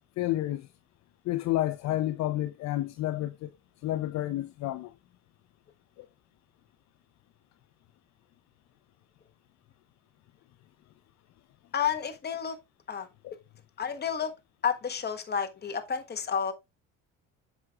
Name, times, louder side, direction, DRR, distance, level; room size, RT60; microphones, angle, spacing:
voice 1, 0.2-0.7 1.3-3.5 3.8-4.9 6.0-6.1 13.2-13.3, left 15 dB, 60° left, 0.6 m, -30 dB
voice 2, 11.7-12.6 12.9-13.1 13.8-14.3 14.6-16.5, left 7 dB, 30° left, 1.4 m, -30 dB
7.9 x 6.0 x 2.4 m
supercardioid pair, 90°, 31 cm